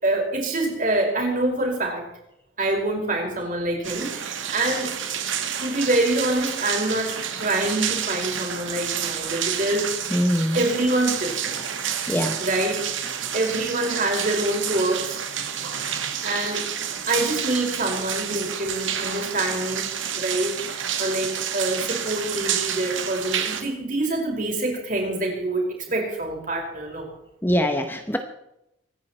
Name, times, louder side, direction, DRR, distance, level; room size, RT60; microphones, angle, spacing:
voice 1, 0.0-2.0 2.6-4.9 5.6-9.9 10.5-11.6 12.4-13.0 13.3-15.2 16.2-16.6 17.1-19.9 20.1-27.1, right 2 dB, 40° right, 1 dB, 5.0 m, -26 dB
sound 1, 3.8-23.6, right 8 dB, 75° right, 1.9 m, -29 dB
voice 2, 10.1-10.6 12.1-12.4 27.4-28.2, equal, 10° left, 6 dB, 0.9 m, -22 dB
25.0 x 10.5 x 4.4 m, 0.83 s
head